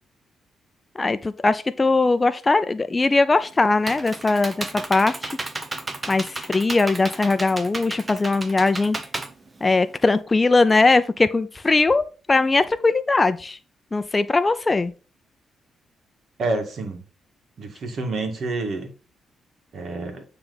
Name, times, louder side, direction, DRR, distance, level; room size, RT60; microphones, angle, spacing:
voice 1, 1.0-5.3 6.1-9.0 9.6-12.0 12.3-13.6 13.9-14.9, left 3 dB, 30° left, 0.5 m, -20 dB
Computer keyboard, 3.3-10.2, right 2 dB, 30° right, 1.0 m, -33 dB
voice 2, 16.4-17.0 17.6-18.9 19.7-20.2, right 3 dB, 65° right, 1.9 m, -28 dB
8.8 x 3.3 x 3.9 m
supercardioid pair, 65°, 0 cm